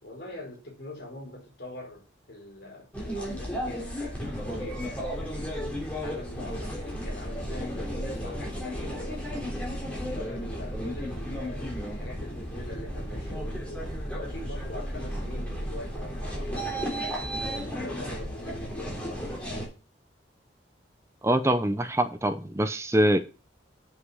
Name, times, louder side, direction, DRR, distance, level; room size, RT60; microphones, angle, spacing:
voice 1, 0.0-9.6 10.0-19.8, left 2 dB, 60° left, 4.6 m, -43 dB
sound 1, 2.9-19.7, equal, 5° left, 3.4 m, -34 dB
voice 2, 21.2-23.2, right 1 dB, 15° right, 0.8 m, -24 dB
7.7 x 6.6 x 6.2 m
head